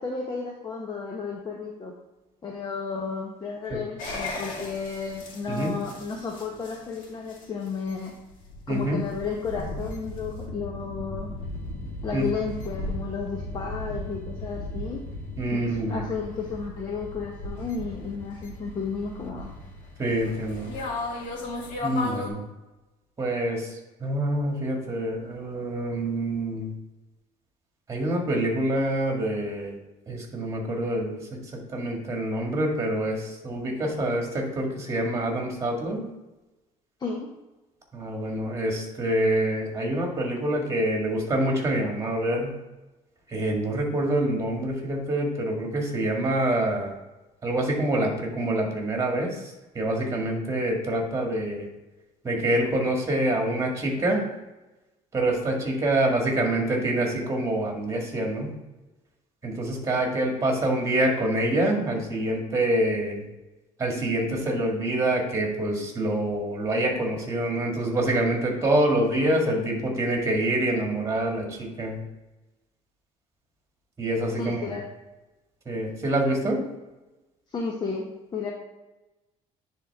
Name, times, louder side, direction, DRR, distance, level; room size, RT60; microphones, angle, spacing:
voice 1, 0.0-1.9 2.4-8.1 8.7-11.4 12.0-15.0 15.5-19.5 37.0-37.3 74.4-74.8 77.5-78.5, left 5 dB, 30° left, 0 dB, 0.9 m, -33 dB
sound 1, 4.0-22.3, left 1 dB, 65° left, 2.1 m, -36 dB
voice 2, 8.7-9.0 12.1-12.2 15.4-16.0 20.0-20.7 21.8-22.4 23.2-23.7 24.0-26.7 27.9-29.8 30.1-31.4 31.7-36.0 37.9-42.5 43.3-46.9 47.4-51.7 52.2-54.2 55.1-58.5 59.4-63.2 63.8-72.0 74.0-74.6 75.7-76.6, right 1 dB, 20° right, 1 dB, 1.8 m, -26 dB
9.9 x 3.7 x 3.5 m, 1.1 s
cardioid pair, 125°, 14 cm